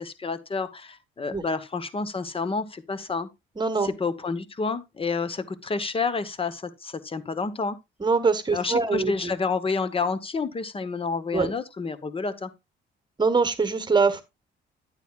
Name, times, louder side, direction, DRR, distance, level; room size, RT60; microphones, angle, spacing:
voice 1, 0.0-3.3 3.8-7.8 8.5-12.5, left 4 dB, 30° left, 1.0 m, -29 dB
voice 2, 3.6-3.9 8.0-9.3 11.3-11.5 13.2-14.2, right 4 dB, 20° right, 1.3 m, -23 dB
9.9 x 9.0 x 2.4 m
cardioid pair, 90°, 20 cm